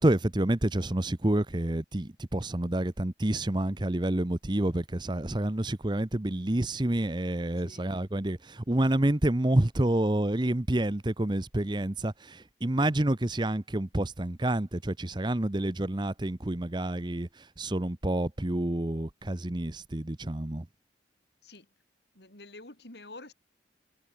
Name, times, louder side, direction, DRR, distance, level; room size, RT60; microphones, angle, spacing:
voice 1, 0.0-20.7, right 1 dB, 25° right, 0.8 m, -28 dB
voice 2, 22.1-23.3, left 2 dB, 65° left, 5.1 m, -48 dB
head